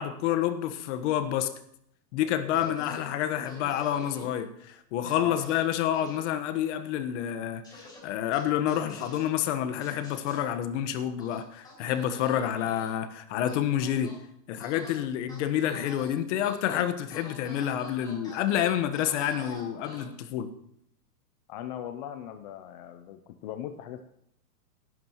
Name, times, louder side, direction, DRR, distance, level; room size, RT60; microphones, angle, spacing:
voice 1, 0.0-1.5 2.1-14.1 14.5-20.5, left 10 dB, 45° left, 9 dB, 1.3 m, -28 dB
voice 2, 2.5-3.0 5.1-5.5 21.5-24.0, left 10 dB, 30° left, 8 dB, 0.5 m, -39 dB
sound 1, 2.5-3.0 3.4-4.2 5.0-5.6 5.9-6.2 7.6-8.0 8.3-9.2 9.8-10.4 11.2-12.9 13.5-14.2 14.6-14.9 15.3-16.1 16.4-16.8 17.1-20.0, left 2 dB, 10° left, 5.8 m, -47 dB
17.5 x 11.0 x 3.0 m, 0.73 s
hypercardioid pair, 145°, 49 cm